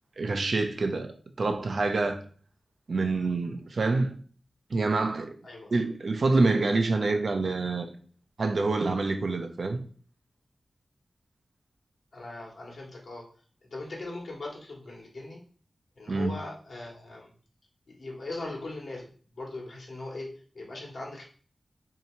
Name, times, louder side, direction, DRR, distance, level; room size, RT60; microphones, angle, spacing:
voice 1, 0.2-1.1 1.4-2.2 2.9-4.1 4.7-5.4 5.7-7.9 8.4-9.8 16.1-16.4, right 3 dB, 65° right, 0.5 m, -26 dB
voice 2, 12.1-13.2 13.7-15.4 16.0-17.3 17.9-19.1 19.3-21.2, left 2 dB, 70° left, 1.1 m, -39 dB
2.8 x 2.8 x 4.3 m
wide cardioid pair, 90°, 0 cm